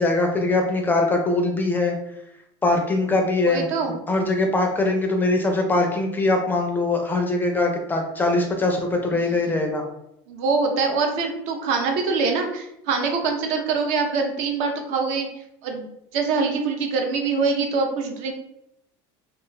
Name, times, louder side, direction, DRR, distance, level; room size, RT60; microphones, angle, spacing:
voice 1, 0.0-2.0 2.6-3.7 4.1-9.8, left 2 dB, 15° left, 3 dB, 0.4 m, -22 dB
voice 2, 3.4-3.9 9.2-9.3 10.3-15.3 15.6-18.3, right 4 dB, 60° right, 3 dB, 0.6 m, -24 dB
2.4 x 2.3 x 3.0 m, 0.80 s
supercardioid pair, 130°, 13 cm